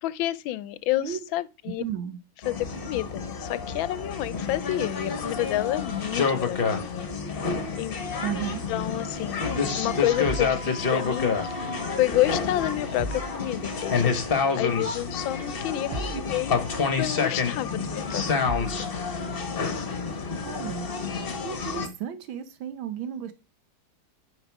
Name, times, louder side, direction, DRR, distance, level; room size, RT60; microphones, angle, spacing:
voice 1, 0.0-1.8 2.4-7.1 7.3-7.4 7.8-8.0 8.7-9.4 9.7-14.1 14.5-15.9 16.3-18.2 18.5-18.7, left 16 dB, 85° left, 1.4 m, -29 dB
voice 2, 1.7-2.2 8.2-8.6 15.9-16.2 20.4-20.9 21.4-23.3, right 9 dB, 85° right, 1.6 m, -34 dB
sound 1, 2.4-21.9, left 5 dB, 35° left, 1.0 m, -28 dB
sound 2, 10.0-12.0, right 4 dB, 25° right, 1.6 m, -41 dB
sound 3, 10.2-10.6 13.0-13.4 15.9-16.3 18.5-18.8, equal, 45° right, 0.4 m, -33 dB
9.5 x 5.3 x 4.6 m
omnidirectional pair, 2.1 m